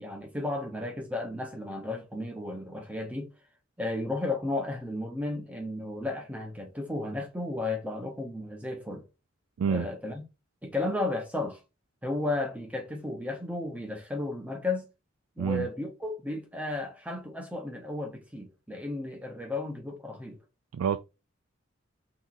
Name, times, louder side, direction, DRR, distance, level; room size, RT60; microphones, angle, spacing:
voice 1, 0.0-3.3 3.8-9.0 9.7-10.2 10.6-11.6 12.0-14.9 15.4-20.4, left 2 dB, 5° right, 0.7 m, -33 dB
voice 2, 15.4-15.7 20.7-21.0, right 7 dB, 85° right, 0.3 m, -27 dB
3.5 x 2.8 x 4.0 m
head